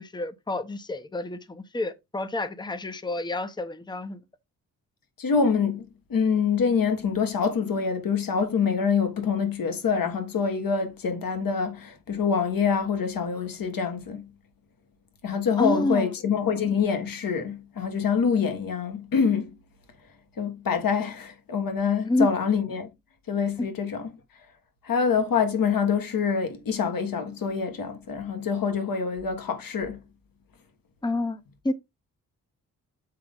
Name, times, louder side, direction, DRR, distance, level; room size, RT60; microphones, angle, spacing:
voice 1, 0.0-4.2 15.6-16.1 22.0-22.3 23.6-23.7 31.0-31.4 31.6-31.7, left 1 dB, 10° left, 0.9 m, -28 dB
voice 2, 5.2-5.8 6.1-14.2 15.2-19.5 20.4-22.9 23.3-24.1 24.8-30.0, left 6 dB, 65° left, 1.6 m, -25 dB
7.6 x 3.8 x 3.7 m
supercardioid pair, 50°, 37 cm